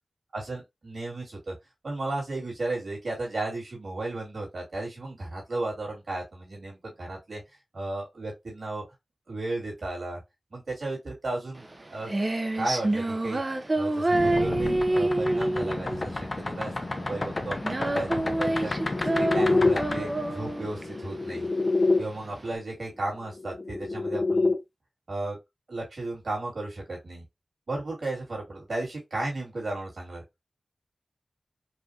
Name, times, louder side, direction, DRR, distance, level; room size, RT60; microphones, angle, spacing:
voice 1, 0.3-1.5 1.8-7.4 7.7-8.8 9.3-10.2 10.5-12.1 12.5-13.4 13.7-18.7 19.1-21.5 22.0-24.6 25.1-25.4 25.7-27.2 27.7-30.2, right 2 dB, 75° right, 2.4 m, -34 dB
Female singing, 11.6-22.5, right 2 dB, 40° right, 0.6 m, -28 dB
sound 1, 14.1-22.0 23.3-24.6, left 3 dB, 50° left, 0.8 m, -28 dB
4.8 x 2.5 x 2.7 m
cardioid pair, 45°, 0 cm